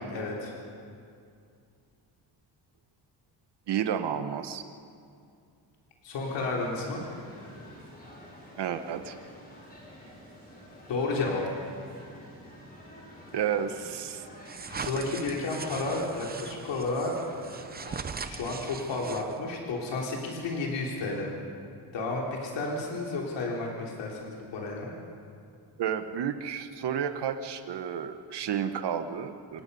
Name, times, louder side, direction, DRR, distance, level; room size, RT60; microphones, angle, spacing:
voice 1, 0.1-0.5 6.0-7.0 10.9-11.4 14.7-17.1 18.2-21.3 21.9-24.9, left 3 dB, 85° left, -2 dB, 3.5 m, -32 dB
voice 2, 3.7-4.6 8.6-9.1 13.3-14.2 25.8-29.6, right 8 dB, 70° right, 8 dB, 1.4 m, -31 dB
sound 1, 6.2-19.2, equal, 20° left, 4.7 m, -49 dB
sound 2, 14.5-19.6, right 5 dB, 20° right, 0.7 m, -40 dB
28.0 x 18.0 x 5.5 m, 2.4 s
wide cardioid pair, 160°, 42 cm